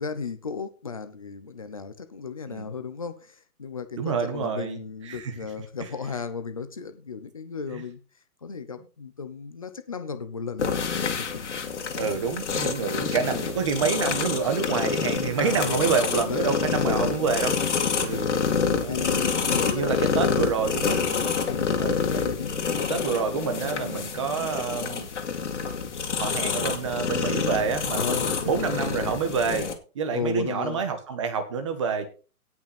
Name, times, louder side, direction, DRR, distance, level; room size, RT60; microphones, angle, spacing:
voice 1, 0.0-8.0 8.4-11.4 11.8-11.9 15.4-17.4 18.1-18.6 18.8-20.5 21.4-23.1 27.9-28.8 30.1-30.9, left 5 dB, 25° left, 0.7 m, -35 dB
voice 2, 4.0-4.8 5.1-5.3 7.7-7.8 12.0-17.5 18.0-18.3 18.8-19.1 19.7-21.3 21.8-22.2 22.9-25.1 26.2-29.7 29.9-32.1, right 6 dB, 20° right, 1.3 m, -28 dB
sound 1, 10.6-29.7, left 6 dB, 50° left, 2.3 m, -27 dB
17.5 x 6.0 x 4.2 m
hypercardioid pair, 175°, 44 cm